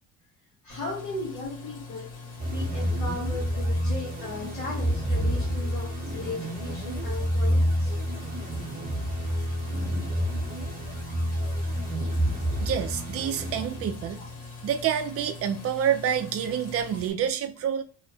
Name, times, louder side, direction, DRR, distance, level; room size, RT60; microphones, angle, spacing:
voice 1, 0.6-7.9 14.2-14.3, left 3 dB, 70° left, 1.2 m, -37 dB
sound 1, 0.7-17.1, left 4 dB, 85° left, 1.3 m, -43 dB
sound 2, 2.4-14.1, equal, 30° right, 0.8 m, -28 dB
voice 2, 12.6-14.2 14.6-17.8, right 9 dB, 50° right, 0.4 m, -28 dB
2.7 x 2.1 x 2.6 m
cardioid pair, 90°, 30 cm